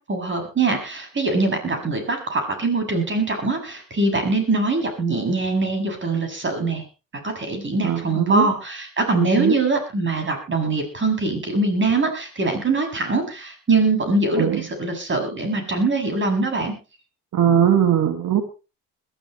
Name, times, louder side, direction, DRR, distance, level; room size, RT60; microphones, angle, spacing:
voice 1, 0.1-6.8 7.2-16.7, right 3 dB, 35° right, 4 dB, 7.4 m, -23 dB
voice 2, 7.8-8.5 9.1-9.6 14.4-14.6 17.3-18.5, right 9 dB, 60° right, 5 dB, 2.2 m, -20 dB
22.0 x 13.5 x 3.2 m, 0.31 s
supercardioid pair, 85°, 34 cm